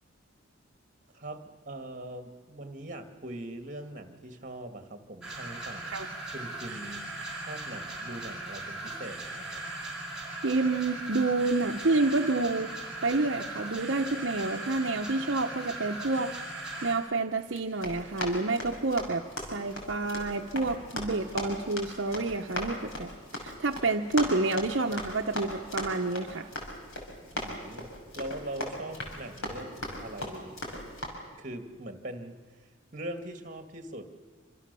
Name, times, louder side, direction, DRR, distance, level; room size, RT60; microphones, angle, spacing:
voice 1, 1.1-5.9 6.3-9.6 27.3-30.6 31.4-32.4 32.9-34.2, right 1 dB, 40° right, 7 dB, 2.2 m, -42 dB
sound 1, 5.2-16.9, right 2 dB, 5° right, 6.3 m, -39 dB
voice 2, 10.3-12.7 13.0-16.5 16.8-26.5, right 3 dB, 65° right, 3 dB, 0.9 m, -29 dB
Run, 17.5-31.1, left 1 dB, 90° left, 5.9 m, -39 dB
27.0 x 26.0 x 6.9 m, 1.4 s
head